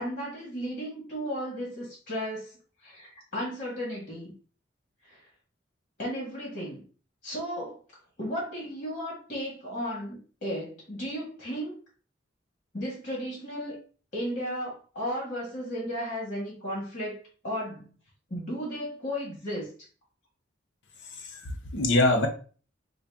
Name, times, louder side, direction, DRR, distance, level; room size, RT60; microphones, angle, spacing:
voice 1, 0.0-2.5 2.8-4.3 5.0-5.2 6.0-6.8 7.2-7.8 8.2-11.7 12.7-13.8 14.1-17.9 18.3-19.7, equal, 40° left, -4 dB, 1.5 m, -34 dB
voice 2, 21.0-22.3, left 2 dB, 70° left, 5 dB, 0.7 m, -25 dB
3.9 x 2.2 x 3.4 m, 0.39 s
head